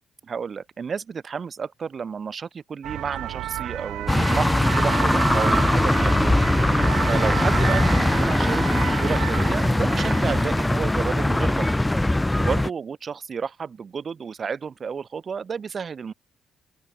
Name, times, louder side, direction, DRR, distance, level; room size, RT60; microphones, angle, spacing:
voice 1, 0.2-11.7 12.4-16.1, right 6 dB, 45° right, 4.0 m, -31 dB
sound 1, 2.8-10.5, right 14 dB, 85° right, 1.0 m, -31 dB
sound 2, 4.1-12.7, left 1 dB, 10° left, 0.5 m, -21 dB
open air
cardioid pair, 90°, 0 cm